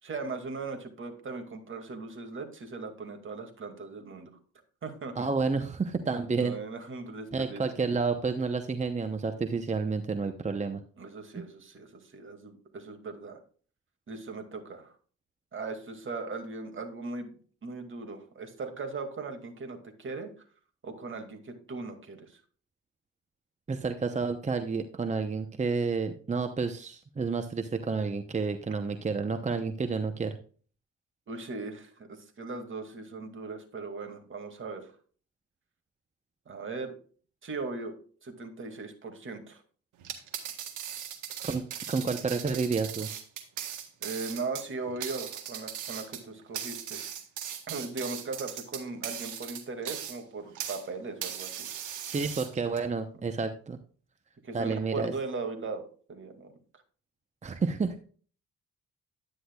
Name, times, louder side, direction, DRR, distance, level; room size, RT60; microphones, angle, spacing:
voice 1, 0.0-4.3 4.8-5.3 6.4-7.6 11.0-13.4 14.1-15.0 15.5-17.3 17.6-20.3 20.8-22.4 31.3-34.9 36.5-36.9 37.4-37.9 38.2-39.6 44.0-47.0 47.7-51.6 54.4-55.8 56.1-56.5, right 3 dB, 40° right, 5 dB, 2.3 m, -38 dB
voice 2, 5.2-6.5 7.3-10.8 11.4-11.5 23.7-30.4 41.4-43.1 52.0-53.8 54.5-55.1 57.4-58.0, right 4 dB, 25° right, 7 dB, 0.8 m, -30 dB
sound 1, 40.0-50.9 51.2-52.8, right 9 dB, 90° right, 1.7 m, -39 dB
10.0 x 9.8 x 2.3 m, 0.42 s
cardioid pair, 90°, 30 cm